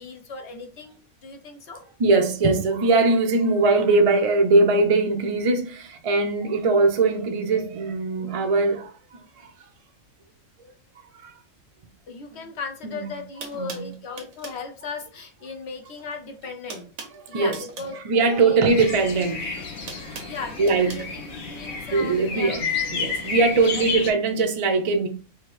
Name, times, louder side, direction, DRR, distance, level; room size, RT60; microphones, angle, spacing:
voice 1, 0.0-1.8 12.1-16.9 17.3-18.6 20.3-22.6 23.5-23.9, left 4 dB, 60° left, 1.0 m, -37 dB
voice 2, 2.0-9.5 11.2-11.3 12.3-12.4 12.8-13.1 13.5-13.9 17.1-17.6 17.9-19.5 19.9-20.3 20.6-21.0 21.6-25.1, right 3 dB, 40° right, 0.5 m, -21 dB
sound 1, 12.9-13.0 13.4-14.6 15.8-16.1 16.4-18.0 19.1-21.0, right 5 dB, 80° right, 1.3 m, -41 dB
sound 2, 18.7-24.1, left 5 dB, 80° left, 1.8 m, -31 dB
4.7 x 2.8 x 3.1 m
omnidirectional pair, 1.4 m